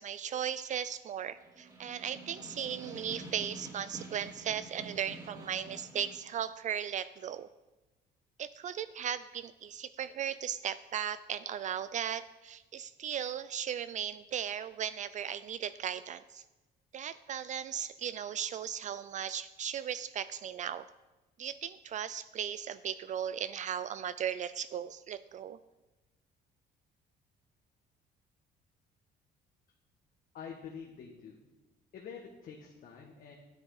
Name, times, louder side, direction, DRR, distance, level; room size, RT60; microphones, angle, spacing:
voice 1, 0.0-7.5 8.4-16.4 16.9-20.9 21.4-25.6, right 9 dB, 45° right, 15 dB, 0.4 m, -37 dB
Snare drum, 1.4-6.3, right 2 dB, 20° right, 2.3 m, -48 dB
voice 2, 30.3-31.5 31.9-33.3, left 6 dB, 55° left, 1 dB, 1.5 m, -47 dB
9.7 x 8.9 x 4.8 m, 1.1 s
cardioid pair, 110°, 17 cm